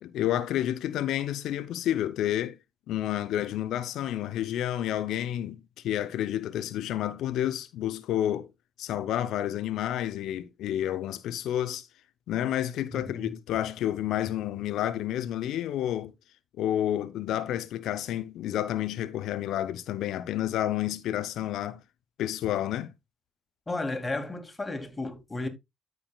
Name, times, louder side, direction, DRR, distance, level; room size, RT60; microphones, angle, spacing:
voice 1, 0.0-2.6 2.9-8.5 8.8-11.9 12.3-16.1 16.6-21.8 22.2-22.9, left 12 dB, 75° left, 0.6 m, -30 dB
voice 2, 12.9-13.4 23.7-25.5, left 2 dB, 25° left, 2.1 m, -33 dB
13.5 x 4.9 x 2.3 m
hypercardioid pair, 45°, 0 cm